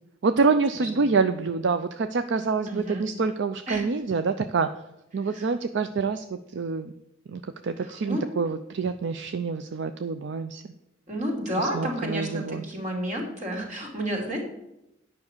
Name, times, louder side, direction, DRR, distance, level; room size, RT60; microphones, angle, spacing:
voice 1, 0.2-4.7 5.1-6.9 7.3-10.7 11.6-12.6, right 4 dB, 65° right, 10 dB, 0.5 m, -26 dB
voice 2, 0.7-1.1 2.7-3.0 3.7-3.8 5.3-5.5 7.8-8.3 11.1-14.4, equal, 40° right, 0 dB, 2.8 m, -31 dB
9.6 x 5.8 x 6.6 m, 0.88 s
head